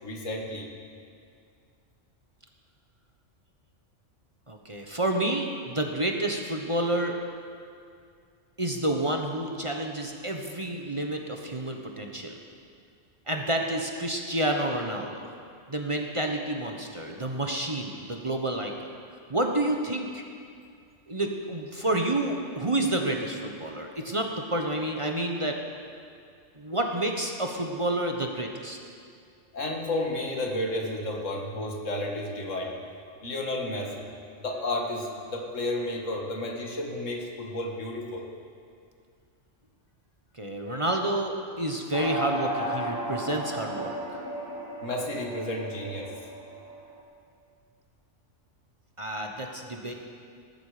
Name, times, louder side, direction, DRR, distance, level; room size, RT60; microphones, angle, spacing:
voice 1, 0.0-0.7 29.5-34.1 34.4-38.3 44.8-46.1, left 1 dB, 80° left, 0 dB, 2.2 m, -32 dB
voice 2, 4.5-7.1 8.6-12.4 13.3-15.3 15.7-18.9 19.3-20.2 21.1-25.6 26.5-28.8 40.3-44.2 49.0-49.9, right 1 dB, 25° right, 2 dB, 1.1 m, -29 dB
sound 1, 41.9-46.9, equal, 15° left, 2.6 m, -34 dB
20.0 x 12.0 x 5.0 m, 2.3 s
omnidirectional pair, 1.3 m